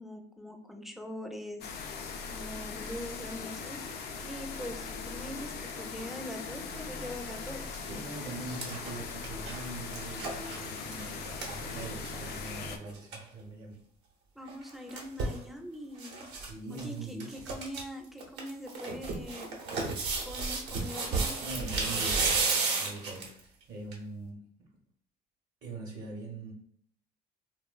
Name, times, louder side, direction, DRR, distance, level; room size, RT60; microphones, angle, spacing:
voice 1, 0.0-7.7 14.4-16.3 16.7-19.6 20.2-21.4, left 1 dB, ahead, 3 dB, 0.3 m, -43 dB
sound 1, 1.6-12.8, left 5 dB, 75° left, 0.4 m, -40 dB
sound 2, 7.5-7.7 8.1-12.4 12.7-12.8 12.9-13.2 14.5-15.4 16.0-16.5 16.7-16.8 17.2-17.8 18.2-23.4 23.9-24.0, right 3 dB, 85° right, 0.7 m, -33 dB
voice 2, 7.8-13.8 16.3-17.4 21.4-22.5 22.8-24.7 25.6-26.5, right 2 dB, 55° right, -1 dB, 0.6 m, -42 dB
3.0 x 2.1 x 2.2 m, 0.63 s
cardioid pair, 110°, 17 cm